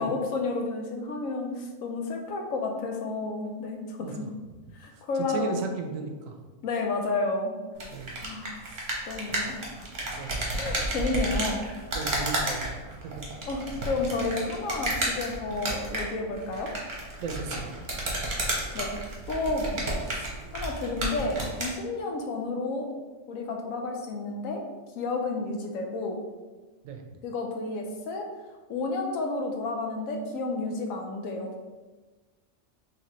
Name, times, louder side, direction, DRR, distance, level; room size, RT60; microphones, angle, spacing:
voice 1, 0.0-4.2 4.8-5.6 6.6-7.6 8.2-8.7 9.1-9.9 10.5-11.7 13.5-16.7 18.7-18.9 19.3-19.8 20.1-20.3 20.5-22.9 23.3-24.6 25.0-26.2 27.2-28.3 28.7-31.5, left 3 dB, 90° left, 3 dB, 1.0 m, -31 dB
voice 2, 5.3-6.4 7.9-8.2 8.7-8.9 9.3-9.5 10.2-10.4 11.9-13.2 17.2-17.8 26.8-27.0, right 4 dB, 80° right, 4 dB, 0.9 m, -36 dB
sound 1, 7.7-21.8, right 1 dB, 40° right, 0.9 m, -32 dB
3.9 x 3.2 x 3.0 m, 1.3 s
omnidirectional pair, 1.4 m